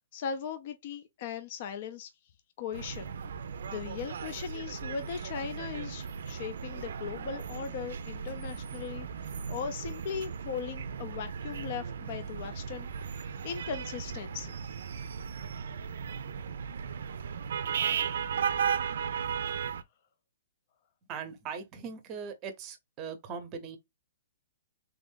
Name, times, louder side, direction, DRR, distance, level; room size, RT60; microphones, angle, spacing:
voice 1, 0.1-2.1 2.6-3.2 3.7-14.6, left 7 dB, 40° left, 0.5 m, -38 dB
sound 1, 2.7-19.8, right 7 dB, 70° right, 0.5 m, -36 dB
voice 2, 21.1-23.8, right 6 dB, 20° right, 0.7 m, -40 dB
3.5 x 2.5 x 3.6 m
hypercardioid pair, 165°, 0 cm